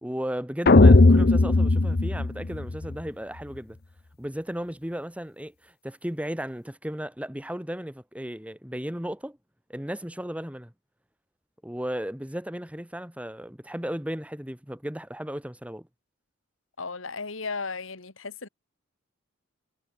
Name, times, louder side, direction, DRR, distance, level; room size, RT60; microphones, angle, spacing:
voice 1, 0.0-3.8 4.2-9.4 9.7-10.7 11.6-15.9, equal, 5° right, 1.8 m, -35 dB
sound 1, 0.7-2.9, left 2 dB, 50° left, 0.8 m, -17 dB
voice 2, 16.8-18.5, left 4 dB, 70° left, 1.9 m, -35 dB
head